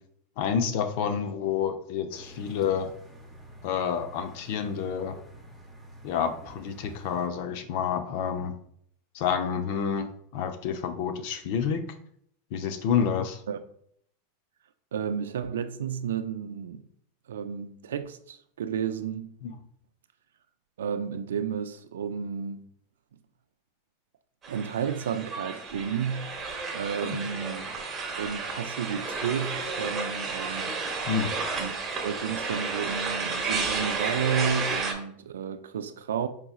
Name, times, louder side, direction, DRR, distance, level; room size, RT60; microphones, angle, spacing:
voice 1, 0.4-2.9 3.6-5.2 6.0-8.5 9.1-10.1 10.3-11.8 12.5-13.4 19.4-19.5 27.0-27.2 31.1-31.3, left 7 dB, 60° left, 0.5 m, -28 dB
sound 1, 2.1-7.3, right 1 dB, ahead, 0.8 m, -48 dB
voice 2, 14.9-16.8 17.3-19.3 20.8-22.6 24.5-27.8 28.2-30.8 31.6-31.8 32.0-36.3, right 7 dB, 90° right, 0.3 m, -32 dB
sound 2, 24.4-34.9, right 4 dB, 25° right, 0.9 m, -32 dB
4.7 x 2.9 x 2.3 m
hypercardioid pair, 115°, 0 cm